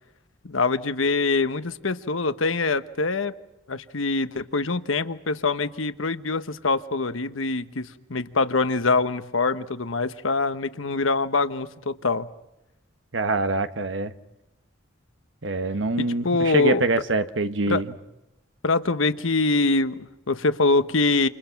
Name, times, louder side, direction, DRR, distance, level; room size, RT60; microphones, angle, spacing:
voice 1, 0.4-3.3 3.7-12.3 16.0-16.8 17.7-17.8 18.6-21.3, left 3 dB, 85° left, 11 dB, 1.2 m, -24 dB
voice 2, 13.1-14.1 15.4-17.9, right 2 dB, 70° right, 10 dB, 1.3 m, -25 dB
28.5 x 28.5 x 6.0 m, 0.90 s
head